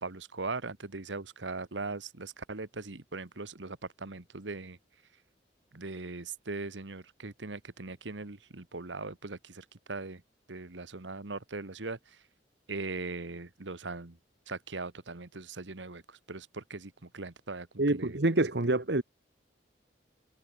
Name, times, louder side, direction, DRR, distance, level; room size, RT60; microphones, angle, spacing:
voice 1, 0.0-4.8 5.7-10.2 10.5-12.0 12.7-14.2 14.5-16.0 16.3-17.7 17.9-18.2, right 3 dB, 90° right, 1.5 m, -40 dB
voice 2, 17.8-19.0, right 2 dB, 65° right, 1.4 m, -26 dB
head